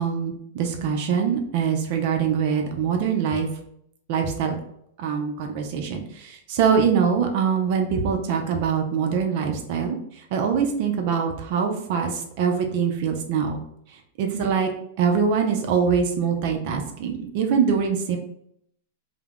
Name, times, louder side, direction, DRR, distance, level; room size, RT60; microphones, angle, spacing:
voice 1, 0.0-3.5 4.1-4.6 5.0-10.0 10.3-13.6 14.2-14.7 15.0-18.2, right 6 dB, 55° right, 4 dB, 0.5 m, -23 dB
2.2 x 2.0 x 3.5 m, 0.72 s
hypercardioid pair, 115°, 0 cm